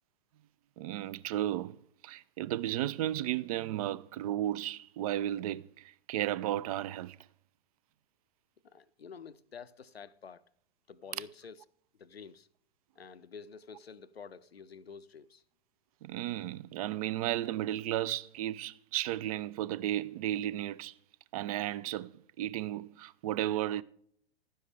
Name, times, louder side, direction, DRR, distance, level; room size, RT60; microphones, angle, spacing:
voice 1, 0.8-7.2 16.0-20.9 21.3-23.8, right 13 dB, 40° right, 0.4 m, -34 dB
voice 2, 8.6-10.4 10.9-11.6 12.0-12.5 13.0-15.4, left 6 dB, 80° left, 0.6 m, -49 dB
12.0 x 10.0 x 3.3 m
figure-of-eight pair, 95°, 30 cm